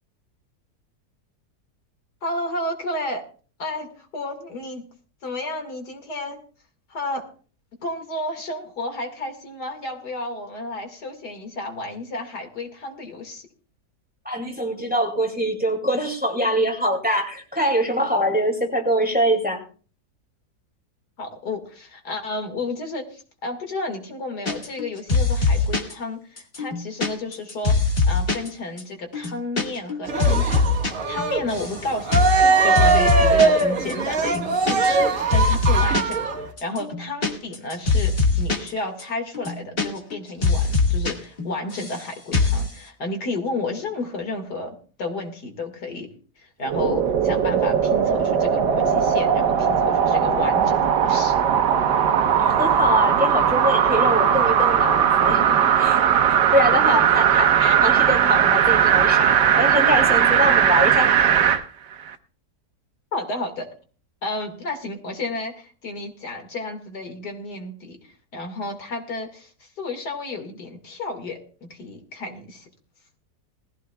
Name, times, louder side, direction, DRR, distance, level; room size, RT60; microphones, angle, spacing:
voice 1, 2.2-3.2 3.6-4.8 5.2-6.4 6.9-7.3 7.8-13.5 21.2-30.7 31.1-46.1 46.4-51.3 57.3-57.8 63.1-63.7 64.2-68.0 68.3-72.7, left 2 dB, 70° left, 4 dB, 2.6 m, -32 dB
voice 2, 14.2-19.6 52.4-56.0 56.5-57.5 57.8-61.5, equal, 5° right, 2 dB, 2.3 m, -23 dB
sound 1, 24.5-24.8 25.1-25.9 26.4-28.5 28.8-28.9 29.1-29.6 29.9-30.9 31.2-31.8 32.1-32.4 32.8-33.6 33.9-34.0 34.2-35.1 35.3-36.1 36.6-38.7 39.0-39.1 39.3-40.2 40.4-41.1 41.4-42.0 42.3-42.7, left 4 dB, 35° left, 1.8 m, -21 dB
Cheering, 30.1-36.5, right 4 dB, 50° right, 1.9 m, -21 dB
sound 2, 46.6-61.6 62.1-62.2, right 8 dB, 90° right, 1.5 m, -18 dB
19.5 x 15.0 x 2.3 m, 0.39 s
omnidirectional pair, 1.8 m